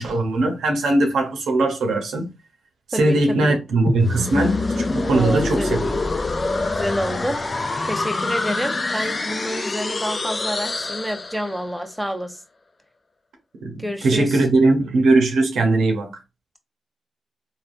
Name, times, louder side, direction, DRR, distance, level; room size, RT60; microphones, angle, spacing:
voice 1, 0.0-2.3 2.9-5.9 13.6-16.1, right 2 dB, 80° right, 0.7 m, -20 dB
voice 2, 2.9-3.6 5.1-6.0 6.7-12.4 13.8-14.4, equal, 5° right, 0.7 m, -29 dB
sound 1, 3.9-11.7, left 3 dB, 40° left, 0.5 m, -25 dB
3.4 x 2.2 x 2.5 m
supercardioid pair, 40°, 0 cm